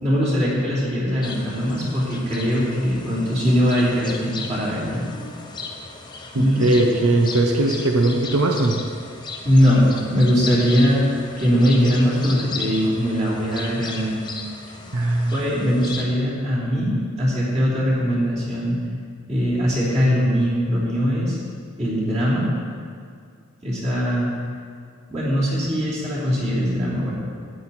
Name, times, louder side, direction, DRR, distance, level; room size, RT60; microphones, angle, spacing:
voice 1, 0.0-5.0 6.3-6.7 9.4-11.1 11.4-14.2 15.3-18.8 19.3-21.4 21.8-22.5 23.6-24.3 25.1-27.1, equal, 30° right, -7 dB, 3.2 m, -21 dB
sound 1, 1.2-16.0, left 4 dB, 20° left, 0.8 m, -36 dB
voice 2, 6.3-8.8 14.9-15.4, right 2 dB, 90° right, 2 dB, 0.9 m, -19 dB
13.0 x 9.4 x 4.2 m, 2.2 s
head